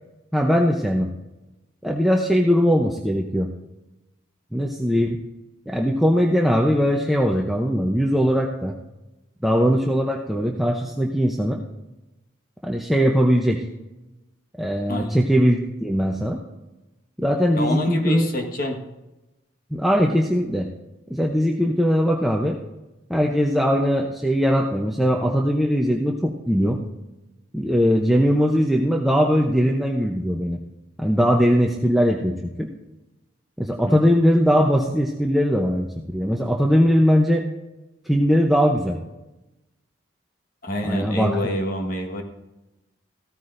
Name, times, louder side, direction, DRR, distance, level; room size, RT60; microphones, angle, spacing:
voice 1, 0.3-1.1 1.8-3.5 4.5-5.2 5.7-8.7 9.4-11.6 12.6-13.6 14.6-16.4 17.2-18.3 19.7-20.7 21.1-22.6 23.1-26.8 27.5-30.6 31.0-32.7 33.6-35.9 36.1-37.5 38.1-39.0 40.8-41.4, equal, ahead, -1 dB, 0.6 m, -20 dB
voice 2, 14.9-15.2 17.5-18.8 33.9-34.0 40.6-42.2, left 1 dB, 45° left, 3 dB, 1.3 m, -27 dB
15.5 x 13.5 x 2.6 m, 1.0 s
head